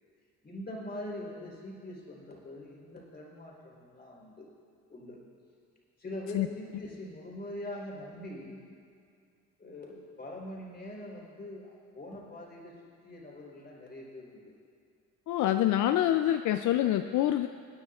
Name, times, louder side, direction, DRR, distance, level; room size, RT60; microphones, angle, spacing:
voice 1, 0.4-4.5 4.9-5.2 6.0-8.6 9.6-12.7 13.0-14.5, left 1 dB, 35° left, -3 dB, 3.7 m, -43 dB
voice 2, 15.3-17.5, left 12 dB, 75° left, 8 dB, 0.4 m, -26 dB
26.0 x 9.6 x 2.4 m, 2.3 s
cardioid pair, 90°, 30 cm